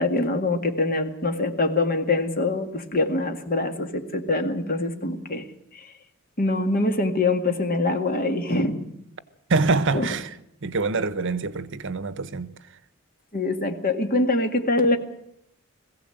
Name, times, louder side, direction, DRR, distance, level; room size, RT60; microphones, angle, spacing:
voice 1, 0.0-5.5 5.7-5.9 6.4-8.9 9.9-10.1 13.3-15.0, left 2 dB, 45° left, 2.0 m, -24 dB
voice 2, 9.5-10.3 10.6-12.5, right 3 dB, 60° right, 1.0 m, -25 dB
21.5 x 16.0 x 7.9 m
head